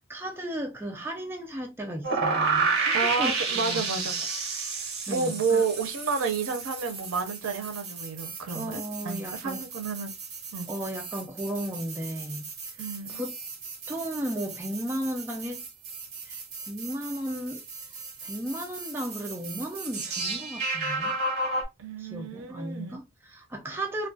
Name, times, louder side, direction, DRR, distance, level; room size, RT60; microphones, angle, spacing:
voice 1, 0.1-3.8 5.1-5.6 8.5-9.6 10.7-12.5 13.1-13.4 13.9-15.6 16.3-16.4 16.7-17.6 18.2-21.2 22.0-24.1, right 1 dB, 10° right, 0.3 m, -35 dB
sound 1, 2.0-21.6, right 4 dB, 55° right, 0.8 m, -33 dB
voice 2, 2.9-4.2 5.1-10.1 10.5-10.7 12.8-13.2 21.8-23.0, right 5 dB, 85° right, 0.5 m, -30 dB
2.2 x 2.2 x 2.5 m
head